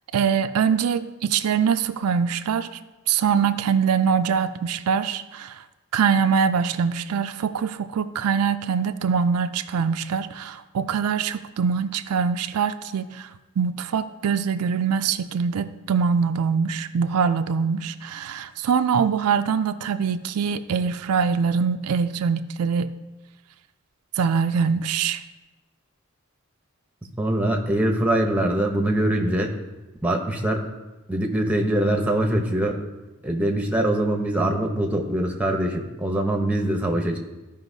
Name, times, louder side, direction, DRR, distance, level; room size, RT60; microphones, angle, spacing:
voice 1, 0.1-2.7 3.1-5.6 5.9-13.3 13.6-22.9 24.2-25.2, right 6 dB, 85° right, 10 dB, 0.4 m, -23 dB
voice 2, 27.0-29.5 30.0-30.7 31.1-32.8 33.2-37.2, right 1 dB, 5° right, 2 dB, 0.7 m, -23 dB
13.5 x 5.2 x 2.7 m, 1.1 s
head